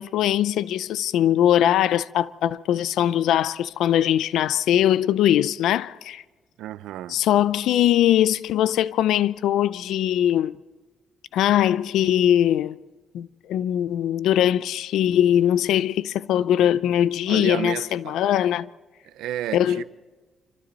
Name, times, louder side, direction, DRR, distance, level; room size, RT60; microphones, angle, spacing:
voice 1, 0.0-6.2 7.1-10.6 11.3-12.8 13.1-18.7 19.5-19.8, left 11 dB, 80° left, 0.6 m, -21 dB
voice 2, 6.6-7.2 17.3-18.2 19.0-19.8, right 12 dB, 90° right, 0.7 m, -32 dB
27.0 x 25.0 x 4.1 m
cardioid pair, 90°, 0 cm